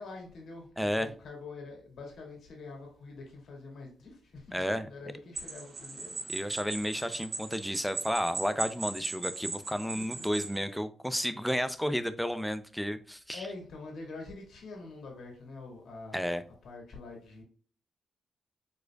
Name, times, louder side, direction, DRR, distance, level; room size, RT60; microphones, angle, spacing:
voice 1, 0.0-6.2 9.9-10.3 13.3-16.3 16.6-17.4, left 3 dB, 70° left, 2.4 m, -45 dB
voice 2, 0.8-1.1 4.5-4.9 6.3-13.4 16.1-16.4, equal, ahead, 0.5 m, -32 dB
sound 1, 5.3-10.6, right 3 dB, 45° right, 2.1 m, -38 dB
5.1 x 4.2 x 2.4 m
cardioid pair, 95°, 0 cm